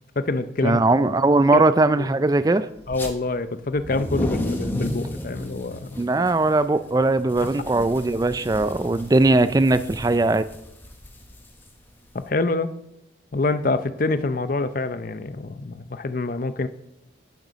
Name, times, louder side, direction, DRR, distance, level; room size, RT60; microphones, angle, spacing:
voice 1, 0.0-0.8 1.5-1.6 2.0-2.1 2.9-6.0 12.1-12.7 13.3-16.7, left 3 dB, 45° left, 12 dB, 0.6 m, -26 dB
voice 2, 0.6-2.7 6.0-10.5, right 2 dB, 20° right, 13 dB, 0.3 m, -19 dB
sound 1, 2.8-3.1 3.7-12.2, left 1 dB, 10° left, 0.8 m, -34 dB
10.5 x 6.6 x 6.2 m, 0.84 s
head